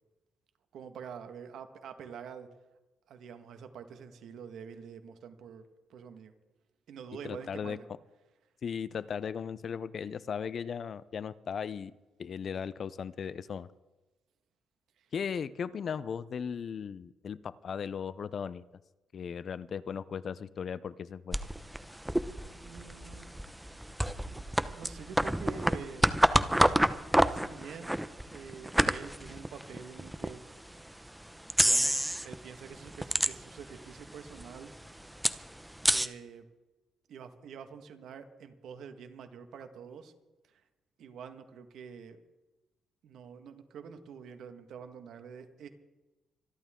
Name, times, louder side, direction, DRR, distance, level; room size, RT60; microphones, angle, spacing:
voice 1, 0.7-2.5 3.1-6.3 6.9-7.8 15.0-15.1 22.6-23.3 24.4-26.1 27.3-28.0 28.3-30.4 31.6-34.7 35.9-36.5 37.1-40.1 40.5-40.6 41.0-42.2 43.0-45.7, right 6 dB, 70° right, 8 dB, 1.7 m, -47 dB
voice 2, 7.2-7.8 8.6-11.9 12.2-13.7 15.1-18.6 19.1-21.4, left 7 dB, 50° left, 18 dB, 0.6 m, -37 dB
sound 1, 21.3-30.4 30.9-31.0 31.5-32.4 32.7-33.8 34.1-34.2 34.3-36.1, right 1 dB, 5° right, 0.8 m, -28 dB
26.0 x 11.5 x 3.8 m, 1.1 s
cardioid pair, 90°, 0 cm